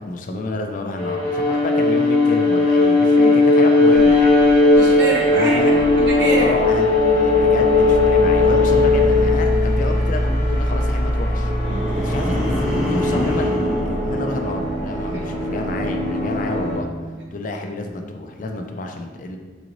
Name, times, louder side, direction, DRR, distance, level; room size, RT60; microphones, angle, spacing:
voice 1, 0.0-4.4 5.3-5.7 6.4-11.5 12.0-16.9 17.3-19.4, left 2 dB, 45° left, 4 dB, 0.4 m, -29 dB
Bowed string instrument, 0.9-9.3, left 2 dB, 50° right, 1.3 m, -17 dB
sound 1, 4.0-16.8, left 2 dB, 15° left, 1.1 m, -21 dB
voice 2, 4.8-6.5 11.7-12.1 15.1-15.2, right 1 dB, 90° right, -3 dB, 0.9 m, -26 dB
sound 2, 11.6-15.0 15.4-15.8, equal, 5° right, 0.6 m, -27 dB
3.9 x 3.0 x 2.5 m, 1.4 s
head